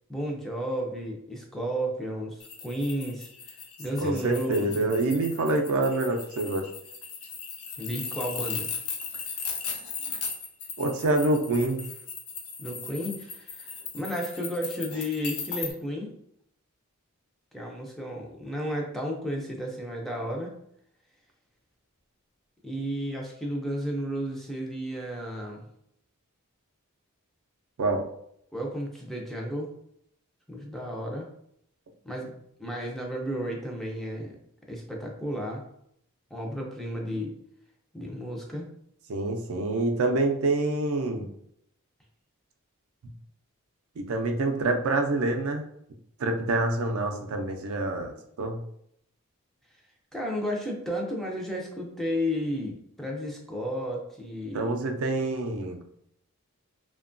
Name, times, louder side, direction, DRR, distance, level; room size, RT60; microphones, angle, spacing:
voice 1, 0.1-3.3 3.8-4.9 7.8-8.7 12.6-16.1 17.5-20.6 22.6-25.6 28.5-29.7 30.5-31.3 32.0-34.4 34.7-35.6 36.3-37.4 37.9-38.7 50.1-54.7, equal, ahead, -1 dB, 0.4 m, -33 dB
sound 1, 2.4-15.7, left 6 dB, 80° left, 0.5 m, -37 dB
voice 2, 4.0-6.6 10.8-11.8 27.8-28.0 39.1-41.3 44.0-45.6 46.2-48.6 54.5-55.8, right 2 dB, 65° right, 4 dB, 0.4 m, -26 dB
2.8 x 2.2 x 2.5 m, 0.71 s
head